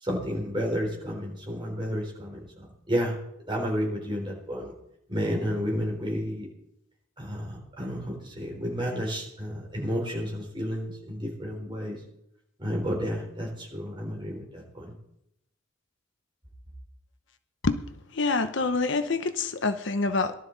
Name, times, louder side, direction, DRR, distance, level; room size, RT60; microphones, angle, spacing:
voice 1, 0.0-3.1 3.5-4.7 5.1-6.5 7.2-12.0 12.6-15.0, equal, 25° right, -2 dB, 4.0 m, -31 dB
voice 2, 18.1-20.3, left 3 dB, 60° left, 9 dB, 0.8 m, -26 dB
18.5 x 12.0 x 4.0 m, 0.79 s
head